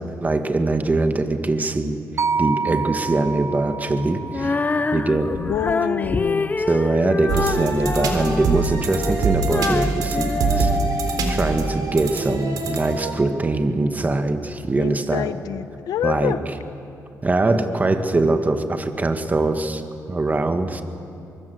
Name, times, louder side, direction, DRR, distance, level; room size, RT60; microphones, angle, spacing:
voice 1, 0.2-2.0 2.4-4.6 4.9-5.3 6.7-15.3 16.0-16.4 17.2-19.8 20.1-20.8, right 2 dB, 25° right, 7 dB, 1.8 m, -22 dB
sound 1, 2.2-6.4, right 5 dB, 45° right, 0.5 m, -29 dB
Female singing, 4.3-11.4, left 3 dB, 25° left, 0.7 m, -26 dB
voice 2, 5.3-6.6 14.8-16.4, left 10 dB, 90° left, 13 dB, 1.0 m, -27 dB
sound 2, 7.3-13.1, right 3 dB, 85° right, 3.7 m, -24 dB
24.0 x 23.0 x 8.0 m, 2.8 s
cardioid pair, 90°, 6 cm